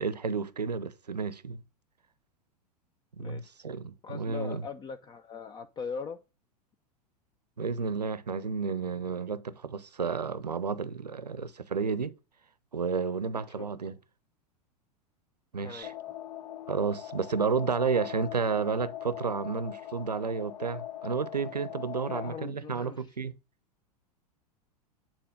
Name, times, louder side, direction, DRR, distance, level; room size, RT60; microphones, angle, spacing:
voice 1, 0.0-1.6 3.2-4.6 7.6-12.2 12.7-13.9 15.5-15.9 16.7-23.3, right 5 dB, 85° right, 0.6 m, -31 dB
voice 2, 4.0-6.2 13.5-14.0 15.6-15.9 22.0-23.2, left 5 dB, 20° left, 0.5 m, -41 dB
sound 1, 15.8-22.3, left 12 dB, 55° left, 0.8 m, -41 dB
8.8 x 4.0 x 5.1 m
figure-of-eight pair, 90°, 20 cm